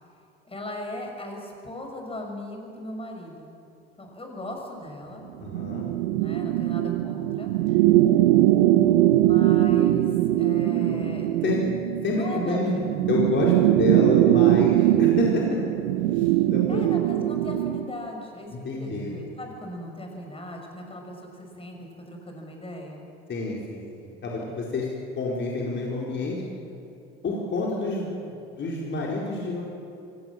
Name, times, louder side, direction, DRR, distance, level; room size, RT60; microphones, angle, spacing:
voice 1, 0.5-3.5 4.0-5.3 6.2-7.5 9.2-11.3 12.1-12.8 16.7-23.1, left 1 dB, 20° left, 2 dB, 6.2 m, -37 dB
voice 2, 5.4-5.9 11.4-11.6 12.0-12.8 13.1-15.6 16.0-16.9 18.5-19.1 23.3-24.9 25.2-26.4 27.2-29.6, left 3 dB, 35° left, -3 dB, 4.5 m, -28 dB
sound 1, 5.5-17.9, right 14 dB, 70° right, 0.7 m, -21 dB
24.5 x 18.0 x 7.5 m, 2.8 s
hypercardioid pair, 65°, 31 cm